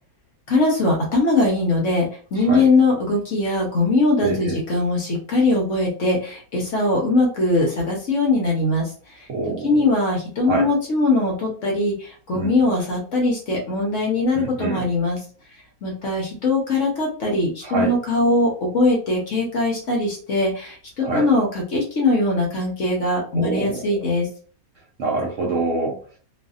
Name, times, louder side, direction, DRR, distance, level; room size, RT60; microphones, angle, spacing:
voice 1, 0.5-9.3 9.6-15.2 15.8-24.3, left 2 dB, 60° left, -1 dB, 0.9 m, -21 dB
voice 2, 4.2-4.6 9.3-9.7 10.4-10.7 12.3-12.6 14.3-14.9 17.6-17.9 21.0-21.3 23.3-23.9 25.0-26.0, right 3 dB, 60° right, -2 dB, 0.9 m, -25 dB
2.7 x 2.5 x 2.4 m, 0.42 s
omnidirectional pair, 1.8 m